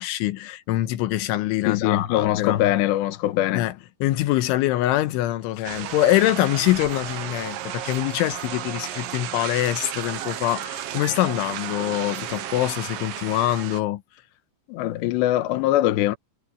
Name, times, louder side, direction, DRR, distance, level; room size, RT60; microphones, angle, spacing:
voice 1, 0.0-2.7 3.5-3.7 4.0-14.0, left 15 dB, 90° left, 3.5 m, -24 dB
voice 2, 1.6-3.7 14.7-16.2, left 14 dB, 70° left, 3.2 m, -22 dB
sound 1, 5.6-13.8, right 11 dB, 70° right, 2.3 m, -33 dB
omnidirectional pair, 5.4 m